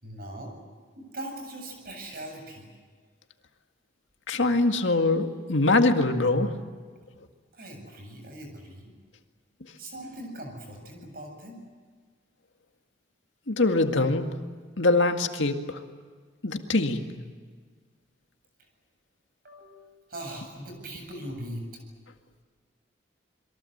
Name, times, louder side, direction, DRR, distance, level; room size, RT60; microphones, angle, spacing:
voice 1, 0.0-0.5 0.9-2.7 7.5-8.9 9.8-11.6 19.4-19.8 20.1-21.7, right 1 dB, 50° right, 4 dB, 7.7 m, -40 dB
voice 2, 4.3-6.6 13.5-14.4 14.8-15.8 16.4-17.1, left 2 dB, 75° left, 5 dB, 2.0 m, -23 dB
28.0 x 22.5 x 8.0 m, 1.5 s
head